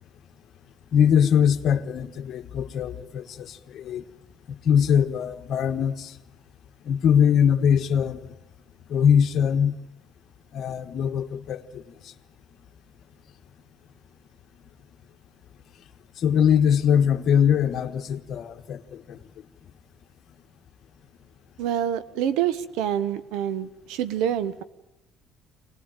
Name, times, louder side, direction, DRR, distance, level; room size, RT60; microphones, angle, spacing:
voice 1, 0.9-4.0 4.5-6.2 6.8-8.3 8.9-9.8 10.5-12.1 16.2-19.2, left 8 dB, 60° left, 1.4 m, -22 dB
voice 2, 21.6-24.6, right 10 dB, 90° right, 1.2 m, -27 dB
24.0 x 19.0 x 9.1 m
cardioid pair, 100°, 0 cm